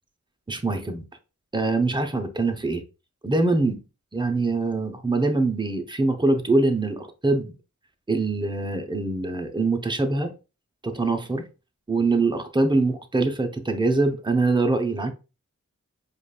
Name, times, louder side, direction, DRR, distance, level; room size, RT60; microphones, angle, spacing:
voice 1, 0.5-1.0 1.5-2.8 3.2-3.8 4.1-7.5 8.1-10.3 10.8-11.4 11.9-15.1, right 3 dB, 15° right, 0.7 m, -23 dB
5.0 x 2.4 x 2.3 m
wide cardioid pair, 60°, 31 cm